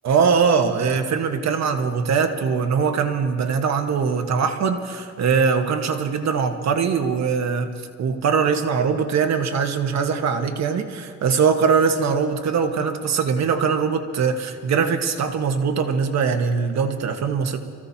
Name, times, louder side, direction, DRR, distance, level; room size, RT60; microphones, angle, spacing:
voice 1, 0.0-17.6, right 6 dB, 60° right, 5 dB, 1.4 m, -21 dB
28.0 x 15.5 x 2.9 m, 2.2 s
cardioid pair, 90°, 30 cm